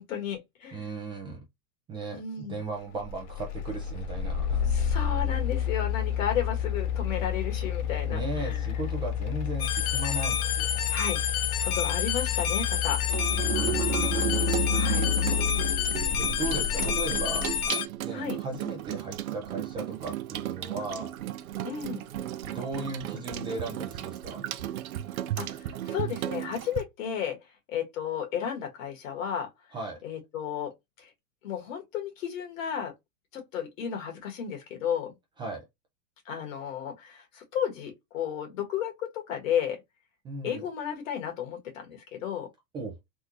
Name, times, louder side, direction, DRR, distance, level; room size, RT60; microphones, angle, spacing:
voice 1, 0.0-0.9 2.1-2.7 4.6-8.6 10.9-11.2 11.6-13.0 14.7-15.1 18.1-18.4 21.6-22.0 25.4-27.4 27.7-29.5 30.0-31.1 31.4-32.9 33.3-35.2 36.2-39.8 40.4-42.5, left 8 dB, 65° left, 1.5 m, -33 dB
voice 2, 0.7-1.4 1.9-4.7 8.0-10.9 13.3-14.3 15.9-17.5 18.0-21.1 22.4-24.5 29.7-30.0 35.4-35.7 40.2-40.6 42.7-43.0, right 3 dB, 10° right, 0.4 m, -37 dB
sound 1, 3.0-17.7, left 9 dB, 50° left, 0.8 m, -30 dB
sound 2, 9.6-17.9, left 9 dB, 85° left, 0.6 m, -29 dB
Water tap faucet / Sink (filling or washing), 13.0-26.8, right 12 dB, 85° right, 0.6 m, -34 dB
3.5 x 2.3 x 2.8 m
hypercardioid pair, 130°, 42 cm